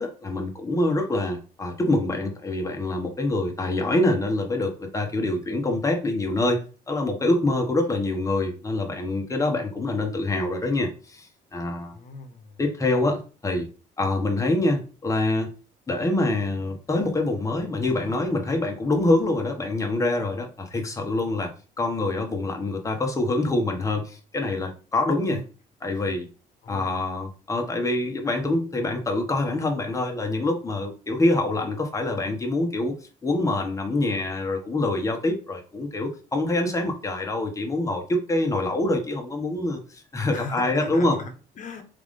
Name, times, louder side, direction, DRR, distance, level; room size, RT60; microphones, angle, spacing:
voice 1, 0.0-11.9 12.6-13.7 14.0-15.5 15.9-25.4 25.8-26.3 26.7-32.9 33.2-41.2, left 2 dB, 20° left, 2 dB, 1.2 m, -25 dB
voice 2, 11.9-12.6 25.3-25.4 25.9-26.1 26.6-27.0 40.3-41.8, left 4 dB, 50° left, 6 dB, 1.1 m, -38 dB
3.8 x 3.5 x 3.6 m, 0.35 s
cardioid pair, 110°, 17 cm